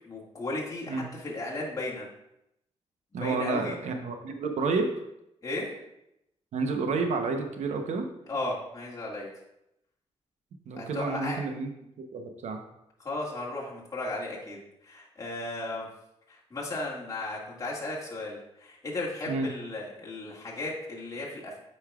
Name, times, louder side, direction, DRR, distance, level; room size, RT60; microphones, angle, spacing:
voice 1, 0.1-2.1 3.1-3.8 5.4-5.7 8.3-9.3 10.8-11.4 13.0-14.6 14.8-15.9 16.3-21.6, left 2 dB, 30° left, -5 dB, 2.0 m, -35 dB
voice 2, 3.1-4.9 6.5-8.1 10.7-11.7 12.1-12.6 19.3-19.5, right 4 dB, 80° right, 5 dB, 0.9 m, -30 dB
8.2 x 5.5 x 2.4 m, 0.83 s
cardioid pair, 85°, 12 cm